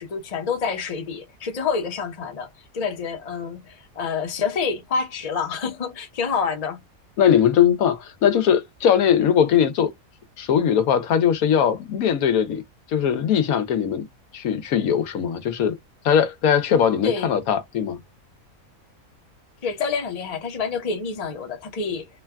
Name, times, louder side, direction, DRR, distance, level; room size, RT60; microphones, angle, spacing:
voice 1, 0.0-2.5 2.7-6.8 17.0-17.3 19.6-22.1, left 5 dB, 35° left, 0.7 m, -27 dB
voice 2, 7.2-9.9 10.4-12.6 12.9-14.1 14.3-15.7 16.0-18.0, left 8 dB, 85° left, 1.2 m, -20 dB
3.1 x 2.2 x 2.2 m
omnidirectional pair, 1.5 m